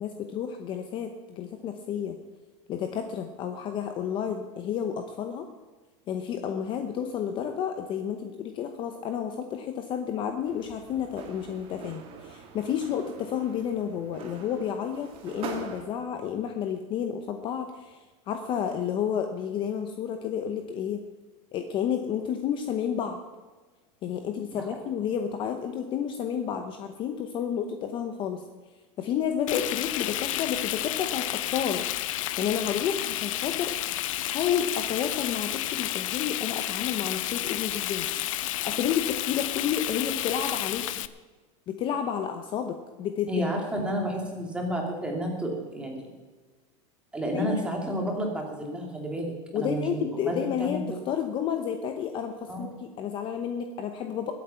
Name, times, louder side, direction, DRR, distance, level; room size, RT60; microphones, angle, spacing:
voice 1, 0.0-2.2 2.7-5.5 6.1-21.0 21.5-23.2 24.0-28.4 29.0-31.9 32.4-33.7 34.2-38.1 38.4-41.0 41.7-43.3 47.3-47.6 49.5-54.3, left 8 dB, 30° left, 6 dB, 0.8 m, -31 dB
sound 1, 10.5-15.9, right 6 dB, 35° right, 1.7 m, -43 dB
Frying (food), 29.5-41.1, left 14 dB, 75° left, 0.7 m, -31 dB
voice 2, 43.3-46.1 47.1-50.8 52.5-52.6, equal, 5° right, 0 dB, 2.5 m, -31 dB
20.5 x 8.3 x 5.7 m, 1.3 s
supercardioid pair, 160°, 17 cm